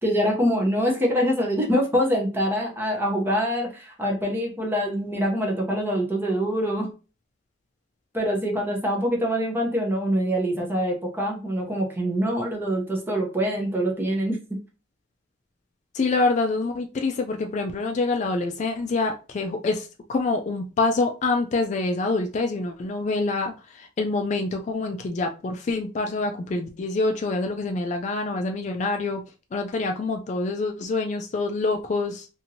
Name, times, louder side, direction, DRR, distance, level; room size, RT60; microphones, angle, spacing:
voice 1, 0.0-6.9 8.1-14.4, equal, 10° right, 0.7 m, -24 dB
voice 2, 15.9-29.2 29.5-32.3, left 3 dB, 40° left, 0.3 m, -26 dB
2.8 x 2.6 x 2.7 m
head